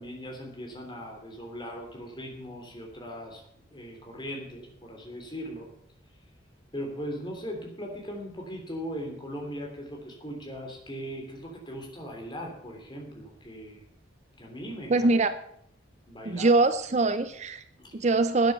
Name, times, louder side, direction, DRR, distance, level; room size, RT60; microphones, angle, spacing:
voice 1, 0.0-3.4 3.7-5.7 6.7-13.8 14.4-15.1 16.1-16.5 17.8-17.9, equal, 25° left, 1 dB, 3.3 m, -39 dB
voice 2, 14.9-15.3 16.2-17.6 17.9-18.5, right 3 dB, 35° right, 11 dB, 0.5 m, -23 dB
12.0 x 9.3 x 6.8 m, 0.72 s
head